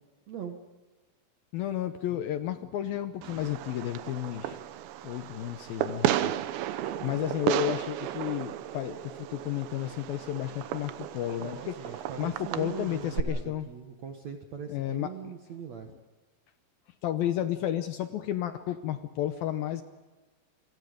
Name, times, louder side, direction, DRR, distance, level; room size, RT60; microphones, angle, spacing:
voice 1, 0.3-0.6 11.4-15.9, right 7 dB, 60° right, 4 dB, 1.8 m, -41 dB
voice 2, 1.5-4.6 5.0-6.3 6.9-11.8 12.2-13.7 14.7-15.1 17.0-19.8, left 12 dB, 75° left, 9 dB, 2.3 m, -32 dB
Fireworks, 3.2-13.2, right 12 dB, 85° right, 3.2 m, -34 dB
29.0 x 24.5 x 5.2 m, 1.3 s
omnidirectional pair, 5.0 m